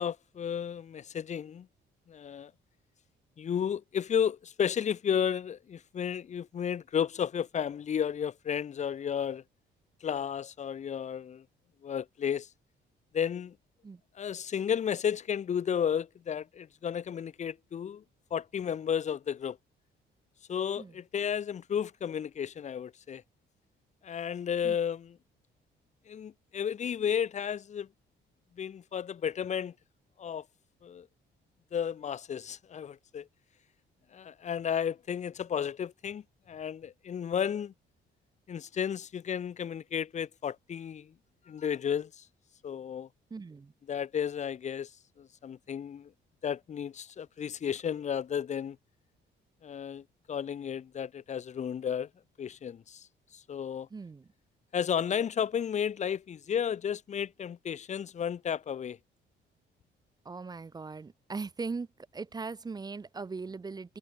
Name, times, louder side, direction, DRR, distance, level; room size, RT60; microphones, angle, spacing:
voice 1, 0.0-1.7 2.1-2.5 3.4-9.4 10.0-11.4 11.8-12.5 13.1-13.5 14.2-18.0 18.3-19.6 20.5-23.2 24.0-25.2 26.1-27.9 28.6-29.7 30.2-30.4 30.8-31.1 31.7-33.3 34.1-37.7 38.5-41.1 41.5-42.3 42.6-43.1 43.9-44.9 45.2-46.1 46.4-48.8 49.6-52.1 52.4-53.1 53.3-53.9 54.7-59.0, left 8 dB, 35° left, 0.5 m, -33 dB
voice 2, 43.3-43.7 53.9-54.3 60.2-61.9 62.1-64.0, right 4 dB, 20° right, 0.5 m, -39 dB
cardioid pair, 90°, 20 cm